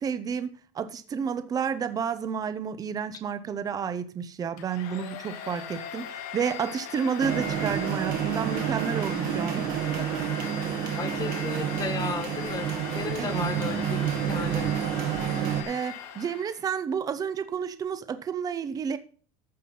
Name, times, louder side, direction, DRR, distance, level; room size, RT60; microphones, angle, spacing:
voice 1, 0.0-9.7 10.0-10.1 13.2-13.4 15.4-19.0, right 7 dB, 20° right, 0.8 m, -31 dB
Domestic sounds home sounds, 4.6-16.7, left 9 dB, 85° left, 2.5 m, -39 dB
sound 1, 7.2-15.6, right 10 dB, 50° right, 1.7 m, -29 dB
voice 2, 11.0-14.7, left 5 dB, 20° left, 1.3 m, -34 dB
14.5 x 5.7 x 5.4 m
cardioid pair, 180°, 19 cm